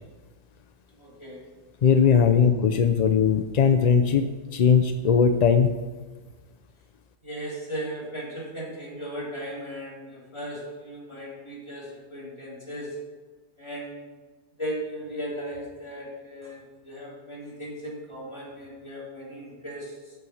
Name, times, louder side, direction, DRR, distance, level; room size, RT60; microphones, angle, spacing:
voice 1, 1.0-1.4 7.2-13.0 13.6-14.1 14.6-19.9, equal, 25° left, -6 dB, 3.0 m, -37 dB
voice 2, 1.8-5.8, left 6 dB, 60° left, 7 dB, 0.4 m, -20 dB
12.0 x 4.7 x 5.6 m, 1.3 s
omnidirectional pair, 1.2 m